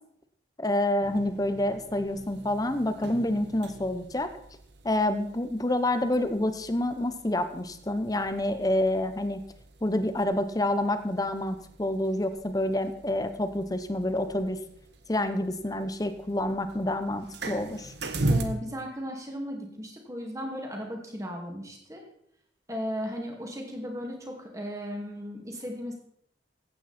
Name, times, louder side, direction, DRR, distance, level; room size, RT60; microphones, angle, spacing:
voice 1, 0.6-4.3 4.8-9.4 9.8-14.6 15.1-17.9, left 1 dB, 20° left, 10 dB, 0.8 m, -28 dB
sound 1, 1.0-18.4, right 2 dB, 60° right, 1.2 m, -39 dB
voice 2, 18.2-22.0 22.7-25.9, equal, 15° right, 1 dB, 2.3 m, -36 dB
15.0 x 9.0 x 4.3 m, 0.70 s
head